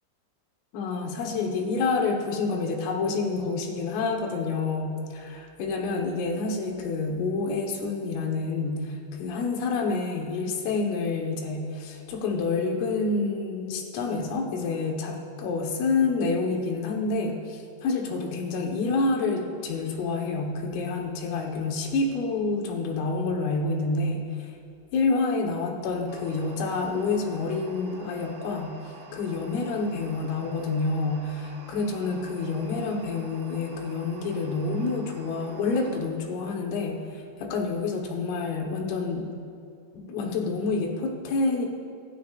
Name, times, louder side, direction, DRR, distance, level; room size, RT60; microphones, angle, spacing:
voice 1, 0.7-24.3 24.9-28.7 29.1-39.3 39.9-41.7, left 3 dB, 85° left, 2 dB, 4.0 m, -28 dB
sound 1, 26.1-36.0, right 4 dB, 70° right, 1.8 m, -48 dB
24.0 x 13.0 x 2.5 m, 2.5 s
omnidirectional pair, 5.7 m